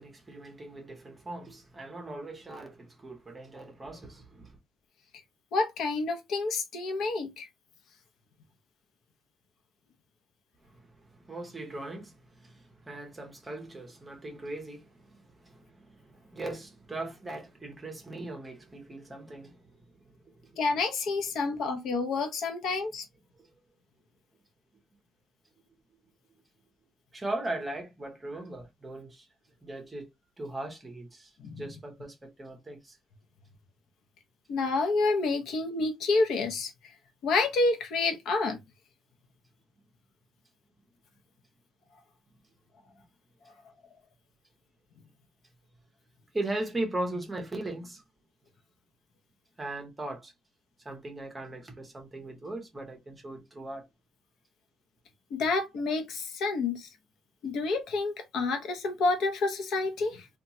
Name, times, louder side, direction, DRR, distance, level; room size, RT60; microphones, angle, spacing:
voice 1, 0.0-4.6 10.6-20.6 23.4-23.5 27.1-29.3 29.6-30.1 30.4-33.0 46.3-48.0 49.6-50.3 50.8-53.9, right 2 dB, 15° right, 0.7 m, -39 dB
voice 2, 5.5-7.5 20.6-23.0 31.4-31.6 34.5-36.7 37.2-38.6 55.3-56.9 57.4-60.3, left 3 dB, 65° left, 0.7 m, -28 dB
2.8 x 2.2 x 2.7 m
cardioid pair, 170°, 0 cm